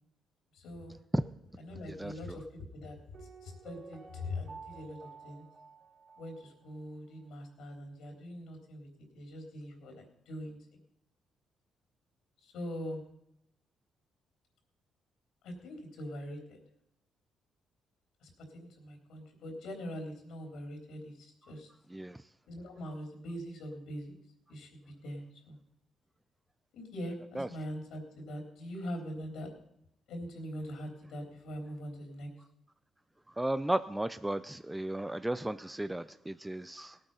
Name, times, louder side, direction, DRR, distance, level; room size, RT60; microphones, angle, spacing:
voice 1, 0.5-1.0 1.6-5.5 6.2-8.9 9.1-10.6 12.4-13.0 15.4-16.6 18.2-21.7 22.5-24.1 24.5-25.6 26.7-29.5 30.1-32.3, equal, 80° left, 3 dB, 3.5 m, -42 dB
voice 2, 1.9-2.4 21.9-22.3 27.3-27.5 33.3-37.0, right 1 dB, 10° right, 13 dB, 0.5 m, -34 dB
Piano, 3.1-6.9 7.2-7.3, right 5 dB, 45° right, 3.1 m, -52 dB
17.5 x 8.9 x 5.6 m, 0.80 s
cardioid pair, 90°, 0 cm